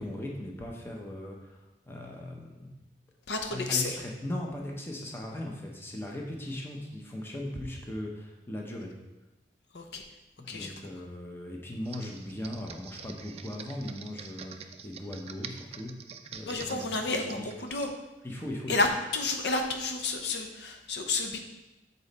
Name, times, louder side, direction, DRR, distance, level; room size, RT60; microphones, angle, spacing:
voice 1, 0.0-2.8 3.5-8.9 10.4-15.9 16.3-17.5 18.2-18.8, left 1 dB, 15° left, -1 dB, 0.8 m, -38 dB
voice 2, 3.3-4.0 9.7-10.0 10.5-10.7 16.5-17.9 18.7-18.9 19.1-21.4, left 3 dB, 75° left, 4 dB, 0.7 m, -30 dB
Computer keyboard, 11.8-18.0, right 6 dB, 35° right, 0.4 m, -46 dB
7.1 x 4.1 x 4.1 m, 1.0 s
head